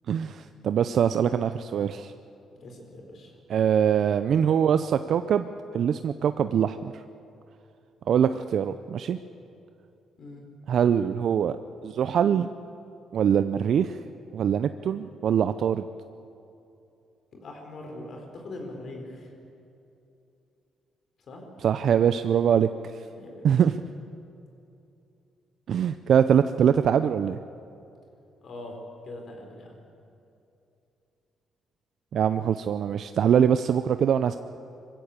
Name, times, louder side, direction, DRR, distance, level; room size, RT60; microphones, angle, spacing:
voice 1, 0.1-2.1 3.5-5.5 5.7-7.0 8.1-9.2 10.7-11.6 11.8-12.5 13.1-14.0 14.3-15.8 21.6-22.7 23.4-23.8 25.7-27.4 32.1-34.4, right 8 dB, 65° right, 11 dB, 0.5 m, -23 dB
voice 2, 2.6-3.3 10.2-10.4 17.4-19.3 21.3-21.5 23.1-23.6 28.4-28.8 29.0-29.7, left 2 dB, 60° left, 2 dB, 4.3 m, -42 dB
21.5 x 15.5 x 8.3 m, 2.7 s
cardioid pair, 90°, 0 cm